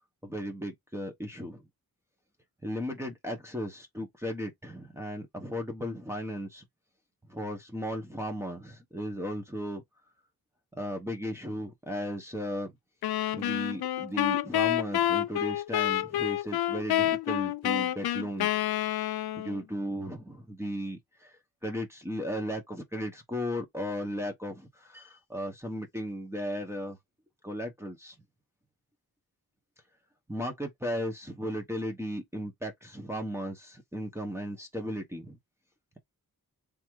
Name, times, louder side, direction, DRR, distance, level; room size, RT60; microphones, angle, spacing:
voice 1, 0.2-1.6 2.6-6.6 7.3-9.8 10.8-12.7 13.3-18.6 19.3-21.3 21.6-27.0 27.4-28.1 30.3-35.4, equal, 5° right, 1.1 m, -36 dB
sound 1, 13.0-19.6, left 13 dB, 90° left, 0.5 m, -28 dB
3.7 x 2.8 x 4.7 m
wide cardioid pair, 135°, 36 cm